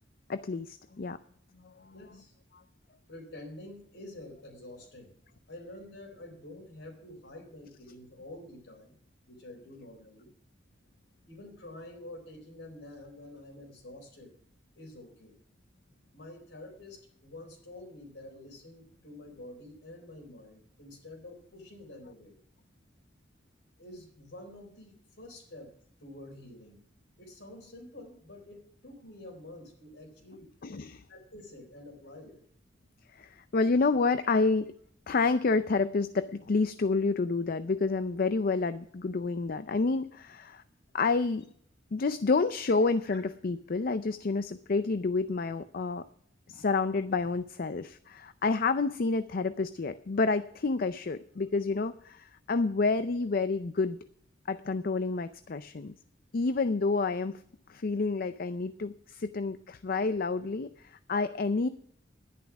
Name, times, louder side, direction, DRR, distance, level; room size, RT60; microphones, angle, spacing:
voice 1, 0.3-1.2 1.6-1.9 30.6-31.0 33.1-34.6 35.1-40.6 40.9-41.4 41.9-46.0 46.5-54.0 54.5-55.9 56.3-57.4 57.7-61.7, left 3 dB, 50° left, 12 dB, 0.5 m, -29 dB
voice 2, 1.9-2.3 3.1-5.1 5.5-8.9 9.3-10.3 11.3-14.3 14.7-15.4 16.1-22.4 23.8-25.7 26.0-26.8 27.2-30.5 31.1-32.4 43.1-43.2, left 1 dB, 75° left, 2 dB, 4.3 m, -48 dB
11.0 x 10.5 x 6.0 m, 0.64 s
head